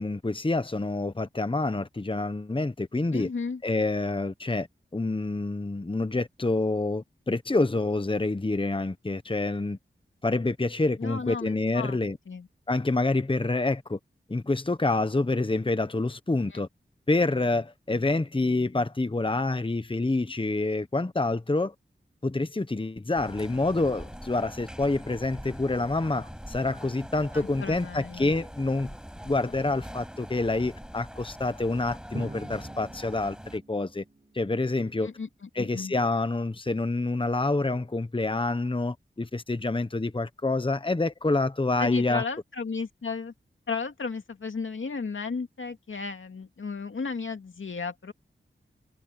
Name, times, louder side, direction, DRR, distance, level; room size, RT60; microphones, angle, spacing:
voice 1, 0.0-3.3 3.6-4.7 4.9-9.8 10.2-12.2 12.7-14.0 14.3-16.7 17.1-21.7 22.2-28.9 29.2-34.0 34.3-35.1 35.6-42.2, left 2 dB, 25° left, 1.1 m, -27 dB
voice 2, 3.1-3.6 11.0-12.0 12.3-12.5 16.5-16.6 27.3-28.3 35.0-35.9 41.8-43.3 43.7-48.1, left 4 dB, 85° left, 2.2 m, -34 dB
sound 1, 23.1-33.6, equal, 5° right, 7.2 m, -43 dB
Drum, 32.1-34.9, right 2 dB, 35° right, 6.6 m, -44 dB
cardioid pair, 50°, 20 cm